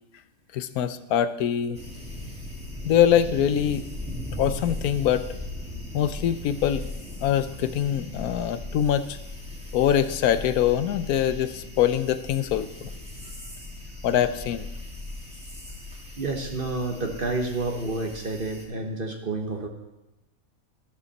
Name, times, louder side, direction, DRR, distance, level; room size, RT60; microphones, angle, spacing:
voice 1, 0.5-1.8 2.8-3.8 4.3-5.3 5.9-6.8 7.2-9.2 9.7-12.9 14.0-14.7, left 10 dB, 90° left, 13 dB, 1.2 m, -23 dB
sound 1, 1.7-18.6, left 2 dB, 5° right, 2.1 m, -38 dB
voice 2, 16.2-19.7, right 2 dB, 40° right, 4 dB, 1.3 m, -29 dB
12.5 x 12.0 x 4.1 m, 1.0 s
omnidirectional pair, 1.5 m